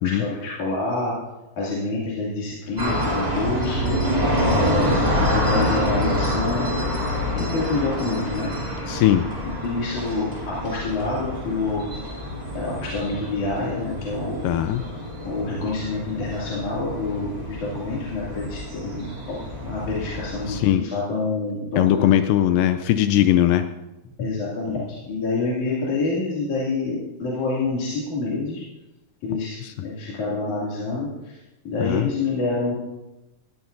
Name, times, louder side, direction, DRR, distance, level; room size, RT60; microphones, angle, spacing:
voice 1, 0.0-1.1 1.6-4.3 4.5-8.5 9.4-11.9 12.6-14.5 15.2-22.1 24.2-28.6 29.2-31.4 31.6-32.7, left 3 dB, 60° left, -7 dB, 3.9 m, -27 dB
sound 1, 2.8-20.6, equal, 10° right, 3.1 m, -27 dB
voice 2, 8.9-9.3 14.4-14.8 20.5-20.8 21.8-23.7 31.8-32.1, left 12 dB, 85° left, 9 dB, 2.3 m, -19 dB
18.5 x 15.5 x 2.6 m, 0.99 s
omnidirectional pair, 3.9 m